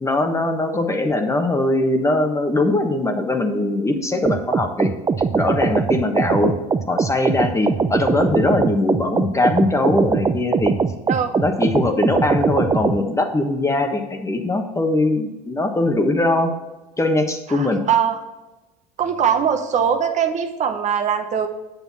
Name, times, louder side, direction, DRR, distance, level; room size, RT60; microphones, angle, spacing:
voice 1, 0.0-4.9 5.3-6.5 6.9-10.7 11.4-16.5 17.0-17.8, left 2 dB, 15° left, 5 dB, 1.3 m, -21 dB
sound 1, 4.3-13.0, right 5 dB, 20° right, 0.6 m, -21 dB
voice 2, 17.5-18.2 19.0-21.5, right 7 dB, 40° right, 6 dB, 1.0 m, -21 dB
8.4 x 6.8 x 4.2 m, 1.1 s
hypercardioid pair, 80°, 18 cm